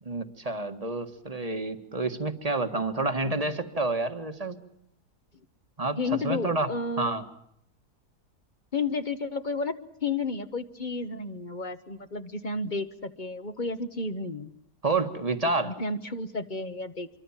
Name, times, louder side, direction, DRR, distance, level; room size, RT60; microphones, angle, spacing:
voice 1, 0.0-4.6 5.8-6.7 7.0-7.2 14.8-15.7, right 3 dB, 25° right, 7 dB, 1.6 m, -29 dB
voice 2, 6.0-7.1 8.7-9.8 10.0-14.5 15.6-17.1, left 3 dB, 35° left, 11 dB, 1.1 m, -32 dB
26.0 x 23.5 x 7.3 m, 0.75 s
omnidirectional pair, 1.7 m